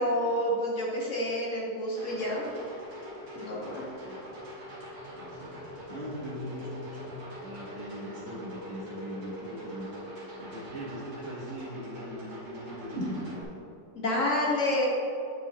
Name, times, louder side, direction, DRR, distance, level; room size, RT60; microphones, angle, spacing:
voice 1, 0.0-2.5 3.3-3.8 13.9-14.9, left 1 dB, 50° left, -3 dB, 1.7 m, -28 dB
sound 1, 2.0-13.4, equal, 80° right, 2.8 m, -43 dB
voice 2, 3.4-4.3 5.1-5.5 5.9-9.9 10.4-13.5, equal, 45° right, -5 dB, 1.5 m, -40 dB
9.2 x 8.1 x 3.0 m, 2.5 s
omnidirectional pair, 1.9 m